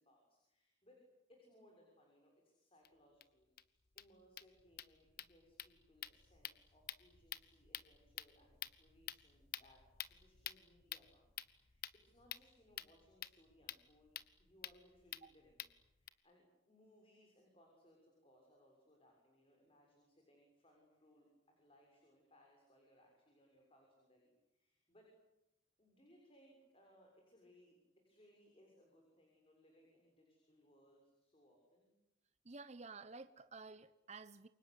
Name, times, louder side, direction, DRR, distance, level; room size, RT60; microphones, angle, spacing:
voice 1, 0.0-14.1 14.4-25.1 25.8-31.9, equal, 30° left, 6.8 m, -68 dB
sound 1, 2.8-2.9 3.2-3.3 3.6-3.7 3.9-16.1, left 11 dB, 50° left, 1.1 m, -51 dB
voice 2, 32.4-34.5, right 3 dB, 35° right, 1.0 m, -52 dB
29.0 x 24.5 x 8.4 m
head